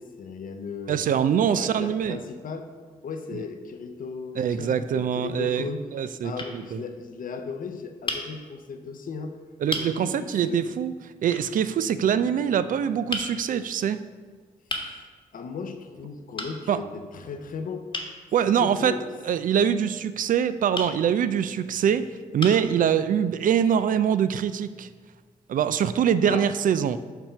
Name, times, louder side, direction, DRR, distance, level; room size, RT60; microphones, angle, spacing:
voice 1, 0.0-2.7 3.0-5.8 6.2-9.4 9.8-10.7 14.8-17.9 18.6-19.0 26.2-26.5, left 5 dB, 60° left, 7 dB, 0.7 m, -36 dB
voice 2, 0.9-2.2 4.4-5.6 5.9-6.8 9.6-10.9 11.2-14.0 16.7-16.8 18.3-19.0 19.2-24.9 25.5-27.0, right 8 dB, 55° right, 13 dB, 0.4 m, -24 dB
sound 1, 6.4-6.6 8.1-8.3 9.1-9.2 9.7-9.9 11.3-11.5 13.1-13.3 14.7-14.9 16.4-16.6 17.9-18.1 20.7-20.9 21.8-21.9 22.4-22.7, left 2 dB, 30° left, 1.1 m, -32 dB
5.7 x 3.5 x 5.5 m, 1.5 s
supercardioid pair, 45°, 16 cm